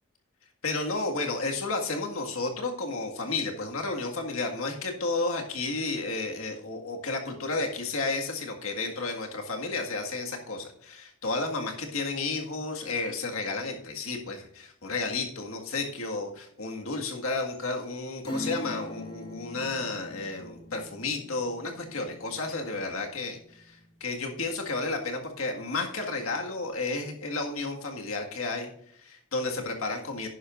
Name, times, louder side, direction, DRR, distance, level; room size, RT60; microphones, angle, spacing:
voice 1, 0.6-30.3, left 3 dB, 85° left, 2 dB, 1.8 m, -32 dB
Acoustic guitar / Strum, 18.2-24.4 24.8-24.9, left 1 dB, 25° left, 2.3 m, -41 dB
10.5 x 10.5 x 2.5 m, 0.67 s
head